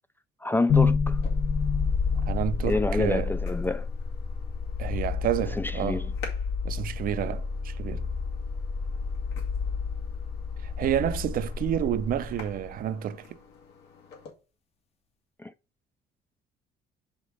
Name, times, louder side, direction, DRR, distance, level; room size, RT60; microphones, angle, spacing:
voice 1, 0.4-1.2 2.6-3.9 5.6-6.1 15.4-15.5, left 2 dB, 10° left, 0.3 m, -28 dB
sound 1, 0.7-12.8, left 5 dB, 35° left, 0.8 m, -29 dB
sound 2, 1.1-14.3, left 5 dB, 80° left, 2.3 m, -50 dB
voice 2, 2.2-3.3 4.8-6.0 6.6-8.1 10.6-13.4, right 10 dB, 55° right, 0.6 m, -29 dB
5.2 x 4.9 x 5.3 m
cardioid pair, 110°, 17 cm